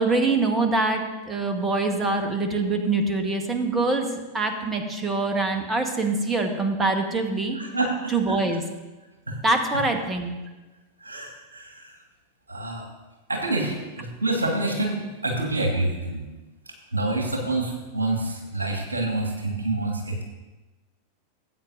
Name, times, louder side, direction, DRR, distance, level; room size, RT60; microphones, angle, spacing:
voice 1, 0.0-7.6 8.1-8.6 9.4-10.4, right 3 dB, 15° right, 5 dB, 1.3 m, -24 dB
voice 2, 7.5-8.4 9.3-9.4 11.0-11.6 12.5-12.8 13.3-16.2 16.9-20.2, right 2 dB, 75° right, 1 dB, 1.6 m, -27 dB
17.5 x 8.5 x 2.7 m, 1.2 s
figure-of-eight pair, 90°, 0 cm